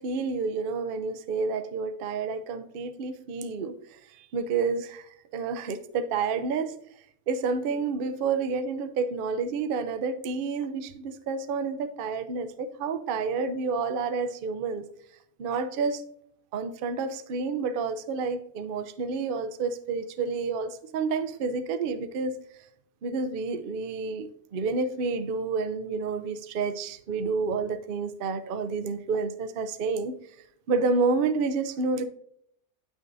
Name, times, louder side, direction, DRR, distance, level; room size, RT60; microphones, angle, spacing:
voice 1, 0.0-6.8 7.3-14.9 15.4-16.0 16.5-22.4 23.0-30.2 30.7-32.0, right 4 dB, 60° right, 0.5 m, -29 dB
9.3 x 6.1 x 2.6 m
omnidirectional pair, 1.5 m